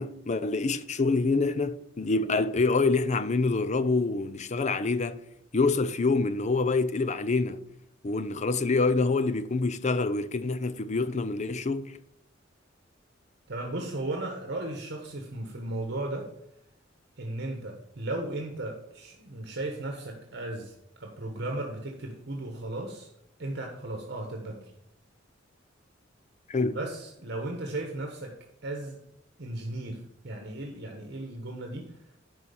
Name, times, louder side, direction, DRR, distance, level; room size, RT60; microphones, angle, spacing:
voice 1, 0.0-5.2 5.5-7.6 8.0-12.0 26.5-26.8, left 3 dB, 35° left, 0.5 m, -26 dB
voice 2, 13.5-16.3 17.2-23.1 23.4-24.7 26.6-28.4 28.6-29.0 29.4-32.0, right 2 dB, 60° right, 1.3 m, -36 dB
11.0 x 4.5 x 7.0 m
head